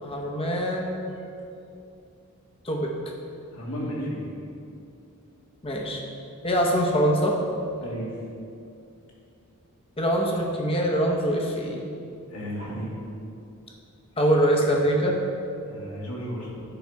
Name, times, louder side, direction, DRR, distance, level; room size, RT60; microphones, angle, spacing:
voice 1, 0.0-1.0 2.6-2.9 5.6-6.0 6.4-7.4 10.0-11.9 14.2-15.2, equal, 25° left, 1 dB, 0.9 m, -23 dB
voice 2, 3.5-4.3 7.8-8.1 12.3-13.0 15.7-16.6, equal, 75° left, -4 dB, 2.1 m, -33 dB
10.0 x 5.6 x 4.7 m, 2.6 s
head